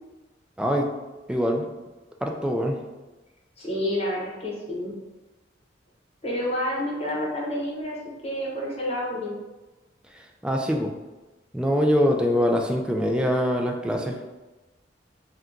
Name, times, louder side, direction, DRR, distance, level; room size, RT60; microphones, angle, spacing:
voice 1, 0.6-0.9 1.3-1.7 2.2-2.8 10.4-10.9 11.5-14.2, equal, 5° right, 2 dB, 0.3 m, -23 dB
voice 2, 3.6-5.0 6.2-8.0 8.2-9.4, left 1 dB, 35° left, -4 dB, 0.9 m, -29 dB
2.8 x 2.2 x 3.7 m, 1.1 s
head